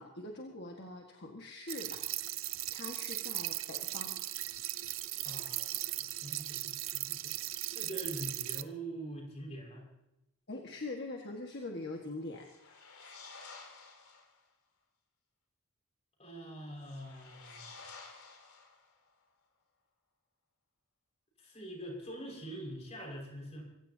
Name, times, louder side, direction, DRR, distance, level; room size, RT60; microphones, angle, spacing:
voice 1, 0.0-2.3 2.7-4.1 10.5-12.5, left 2 dB, 50° left, 1 dB, 1.7 m, -43 dB
sound 1, 1.7-8.6, right 15 dB, 65° right, 0.7 m, -38 dB
voice 2, 5.2-7.3 7.6-9.9 16.2-18.0 21.4-23.6, right 1 dB, 30° left, 0 dB, 5.7 m, -44 dB
sound 2, 12.3-14.4 16.8-19.1, left 4 dB, 90° left, 4.9 m, -52 dB
25.5 x 16.5 x 2.9 m, 0.91 s
head